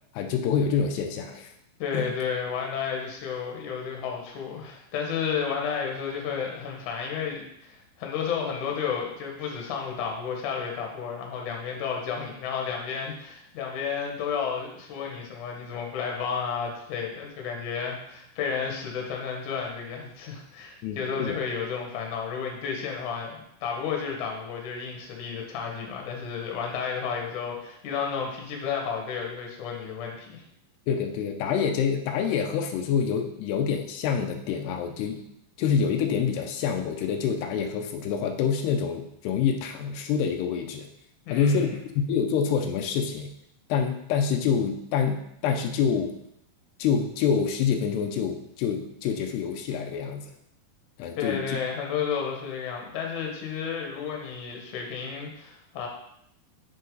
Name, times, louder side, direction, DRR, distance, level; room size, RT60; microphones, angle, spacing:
voice 1, 0.1-1.5 1.9-2.2 20.8-21.4 30.9-35.2 35.6-40.9 41.3-41.8 42.1-43.3 43.7-46.1 46.8-50.3 51.0-51.6, left 7 dB, 85° left, 4 dB, 2.8 m, -26 dB
voice 2, 1.8-30.4 41.3-41.8 51.2-55.9, left 6 dB, 60° left, 1 dB, 2.6 m, -32 dB
8.0 x 6.6 x 3.9 m, 0.75 s
omnidirectional pair, 4.6 m